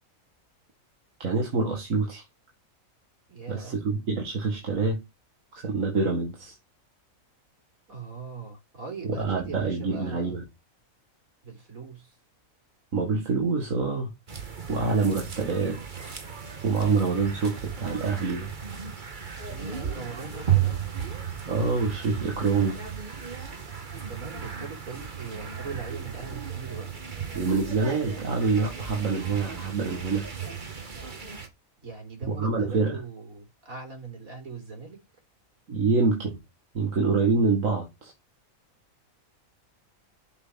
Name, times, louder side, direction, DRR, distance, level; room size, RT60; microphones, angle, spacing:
voice 1, 1.2-2.2 3.5-5.0 5.5-6.5 9.0-10.4 12.9-14.1 14.7-16.1 16.6-18.5 21.5-22.8 27.3-30.2 32.4-33.0 35.7-36.4 36.7-38.1, right 4 dB, 70° right, 2.3 m, -26 dB
voice 2, 3.3-3.8 7.9-10.4 11.4-12.1 19.4-21.0 24.1-26.9 31.8-35.0, right 4 dB, 85° right, 4.5 m, -40 dB
sound 1, 14.3-31.5, right 8 dB, 35° right, 1.5 m, -34 dB
7.8 x 6.0 x 5.8 m
omnidirectional pair, 1.4 m